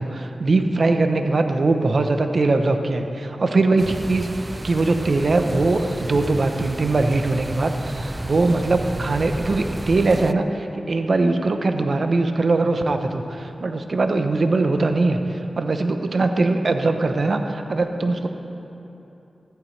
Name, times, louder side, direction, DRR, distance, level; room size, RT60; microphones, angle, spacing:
voice 1, 0.0-4.3 4.6-18.3, right 3 dB, 60° right, 6 dB, 0.8 m, -21 dB
sound 1, 3.8-10.3, right 1 dB, 25° right, 0.4 m, -32 dB
14.0 x 13.0 x 3.3 m, 2.9 s
cardioid pair, 55°, 0 cm